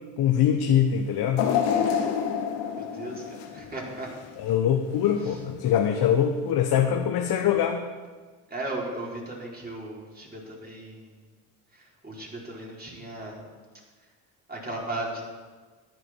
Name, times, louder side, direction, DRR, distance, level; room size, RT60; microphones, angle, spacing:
voice 1, 0.2-1.4 4.4-7.8, left 9 dB, 55° left, 5 dB, 1.1 m, -23 dB
sound 1, 1.4-4.5 5.0-5.1 6.1-6.2, left 8 dB, 70° left, 1.5 m, -28 dB
voice 2, 2.8-4.1 5.2-5.4 8.5-11.2 11.7-13.5 14.5-15.2, right 2 dB, 20° right, -4 dB, 4.8 m, -36 dB
13.5 x 10.5 x 4.6 m, 1.4 s
hypercardioid pair, 60°, 44 cm